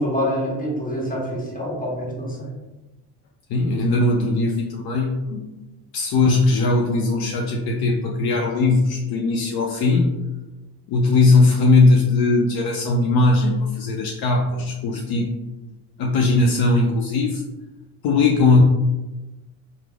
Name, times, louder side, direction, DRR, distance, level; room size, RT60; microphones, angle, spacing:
voice 1, 0.0-2.5, equal, 20° left, -4 dB, 1.4 m, -26 dB
voice 2, 3.5-5.4 5.9-10.1 10.9-15.3 16.0-17.4 18.0-18.6, left 3 dB, 65° left, 0 dB, 0.6 m, -19 dB
3.4 x 2.0 x 3.4 m, 1.1 s
supercardioid pair, 75°, 42 cm